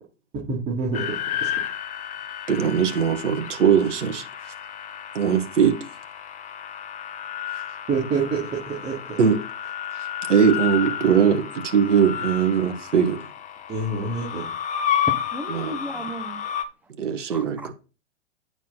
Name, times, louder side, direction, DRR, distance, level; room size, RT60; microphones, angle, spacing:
voice 1, 0.5-1.5 7.9-9.2 13.7-14.5, right 4 dB, 25° right, 2.9 m, -27 dB
sound 1, 0.9-16.6, left 9 dB, 20° left, 1.0 m, -31 dB
voice 2, 2.5-4.5 5.1-5.9 9.2-9.4 9.9-13.2 15.5-15.8 17.0-17.7, right 7 dB, 75° right, 2.0 m, -21 dB
voice 3, 15.1-16.6 17.3-17.4, right 1 dB, 5° right, 1.0 m, -34 dB
9.1 x 6.4 x 4.2 m
hypercardioid pair, 115°, 36 cm